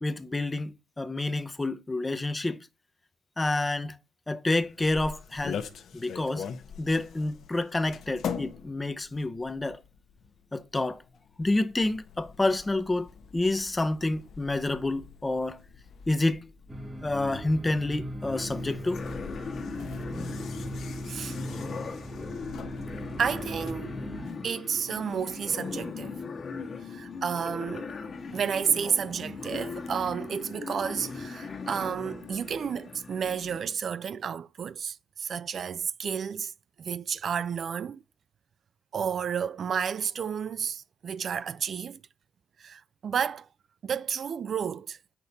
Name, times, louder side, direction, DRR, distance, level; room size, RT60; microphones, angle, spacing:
voice 1, 0.0-2.7 3.4-3.9 4.3-5.6 5.9-6.5 6.8-9.8 10.5-11.0 11.4-13.1 13.3-15.6 16.1-16.5 17.0-19.0, left 2 dB, 15° left, 0.6 m, -28 dB
sound 1, 4.6-23.7, left 7 dB, 65° left, 0.9 m, -43 dB
sound 2, 16.7-24.3, equal, 15° right, 1.0 m, -39 dB
sound 3, 18.3-33.6, left 4 dB, 45° left, 1.4 m, -39 dB
voice 2, 23.2-24.0 24.4-26.1 26.8-27.9 28.3-36.5 36.8-38.0 38.9-42.0 42.6-43.5 43.8-45.0, right 7 dB, 55° right, 0.3 m, -31 dB
8.3 x 5.9 x 4.1 m
cardioid pair, 90°, 0 cm